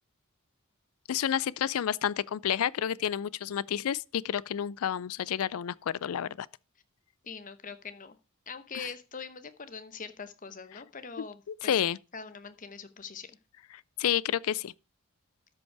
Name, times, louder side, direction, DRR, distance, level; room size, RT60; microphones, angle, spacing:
voice 1, 1.1-6.5 11.5-12.0 14.0-14.7, left 9 dB, 75° left, 0.4 m, -30 dB
voice 2, 7.3-8.2 8.5-11.9 12.1-13.4, left 5 dB, 35° left, 0.9 m, -43 dB
13.0 x 5.4 x 4.6 m
head